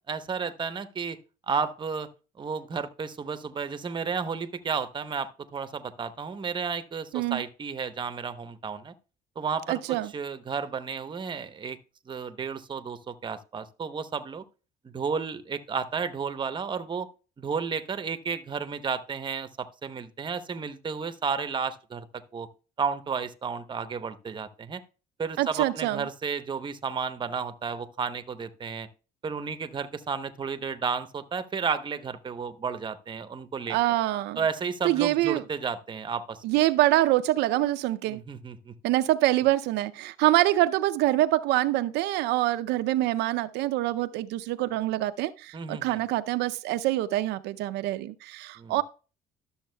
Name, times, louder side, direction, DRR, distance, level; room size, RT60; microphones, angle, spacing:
voice 1, 0.1-1.2 1.5-2.1 2.4-8.9 9.4-11.8 12.1-14.4 14.8-17.1 17.4-22.1 22.3-22.5 22.8-24.8 25.2-28.9 29.2-33.8 34.4-36.4 38.1-38.7 45.5-46.0 48.6-48.8, right 5 dB, 30° right, 0.8 m, -32 dB
voice 2, 9.7-10.1 25.4-26.0 33.7-34.4 34.8-35.4 36.4-38.2 38.8-48.8, right 16 dB, 85° right, 0.5 m, -25 dB
12.0 x 7.1 x 2.2 m
cardioid pair, 110°, 17 cm